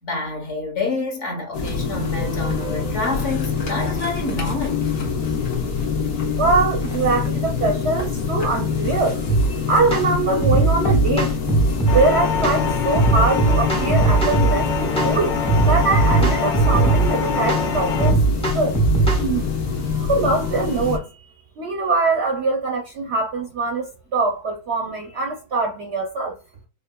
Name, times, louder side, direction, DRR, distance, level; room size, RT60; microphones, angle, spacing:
voice 1, 0.0-4.8, left 3 dB, 55° left, 1.3 m, -28 dB
sound 1, 1.5-21.0, left 5 dB, 70° left, 1.5 m, -25 dB
voice 2, 6.4-11.4 11.8-18.2 18.5-18.8 19.2-19.5 19.9-21.3 21.6-26.3, right 3 dB, 65° right, 0.7 m, -23 dB
sound 2, 9.3-9.5 9.9-10.1 10.4-12.0 12.4-12.6 12.9-14.5 15.0-15.1 15.5-17.1 17.5-17.7 18.0-19.2, right 3 dB, 5° left, 0.6 m, -18 dB
sound 3, 11.9-18.1, left 4 dB, 90° left, 1.3 m, -26 dB
4.5 x 2.6 x 2.2 m
omnidirectional pair, 1.6 m